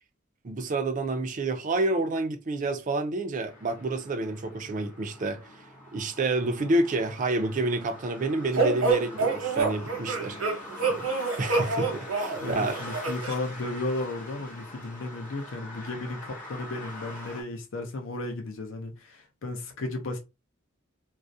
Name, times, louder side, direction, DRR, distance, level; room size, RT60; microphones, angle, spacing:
voice 1, 0.4-5.5 5.9-11.1 11.4-12.8, right 2 dB, 40° right, 0.4 m, -29 dB
sound 1, 3.5-17.4, left 1 dB, 40° left, 0.8 m, -43 dB
sound 2, 8.5-13.4, right 4 dB, 90° right, 0.9 m, -27 dB
voice 2, 12.4-20.2, left 2 dB, 65° left, 0.5 m, -34 dB
2.3 x 2.0 x 2.6 m
head